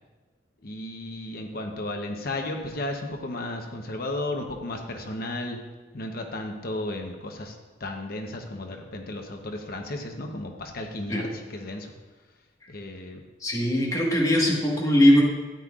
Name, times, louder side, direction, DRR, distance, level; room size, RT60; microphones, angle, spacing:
voice 1, 0.6-5.6 5.9-11.9 12.7-13.2, left 1 dB, 50° left, 3 dB, 0.9 m, -34 dB
voice 2, 13.4-15.2, equal, 15° left, -3 dB, 1.5 m, -20 dB
13.0 x 9.9 x 2.4 m, 1.3 s
head